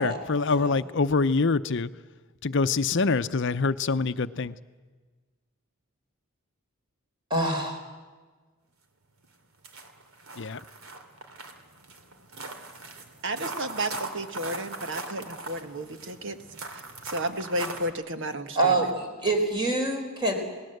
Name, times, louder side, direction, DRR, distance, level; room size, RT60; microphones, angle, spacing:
voice 1, 0.0-1.9 2.4-4.5 10.4-10.6, left 4 dB, 55° left, 13 dB, 0.7 m, -25 dB
voice 2, 7.3-7.8 18.6-20.3, right 2 dB, 20° right, 3 dB, 4.2 m, -26 dB
sound 1, 9.2-9.3 9.6-17.9, right 3 dB, 75° right, 2.8 m, -40 dB
voice 3, 13.2-16.4 16.7-18.9, right 1 dB, 55° right, 8 dB, 1.5 m, -33 dB
28.5 x 19.0 x 7.9 m, 1.4 s
head